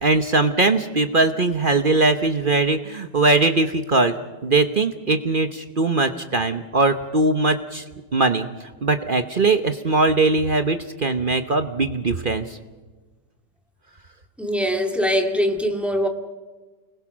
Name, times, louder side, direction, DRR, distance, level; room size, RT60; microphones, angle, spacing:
voice 1, 0.0-4.1 4.4-7.8 8.1-8.5 8.8-12.5, right 3 dB, 40° right, 8 dB, 0.8 m, -20 dB
voice 2, 14.4-16.1, equal, ahead, 3 dB, 1.9 m, -22 dB
29.5 x 21.0 x 6.2 m, 1.3 s
omnidirectional pair, 2.0 m